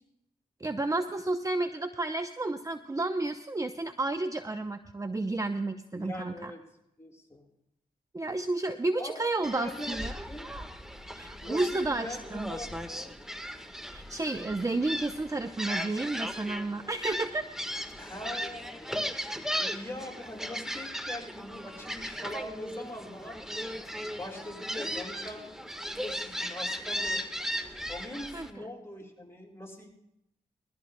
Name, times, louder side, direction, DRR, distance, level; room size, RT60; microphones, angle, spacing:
voice 1, 0.6-6.5 8.1-10.1 11.1-12.5 13.9-17.5 28.3-28.5, right 2 dB, 20° right, 8 dB, 0.7 m, -31 dB
voice 2, 5.9-6.6 7.0-7.5 9.0-10.5 11.4-13.1 18.0-19.2 19.6-23.7 24.1-25.5 25.9-27.2 27.9-29.9, left 1 dB, 15° left, 0 dB, 6.3 m, -42 dB
Gull seagull, 9.4-28.5, equal, 5° right, 1.4 m, -37 dB
21.5 x 14.5 x 2.2 m, 0.79 s
cardioid pair, 55°, 16 cm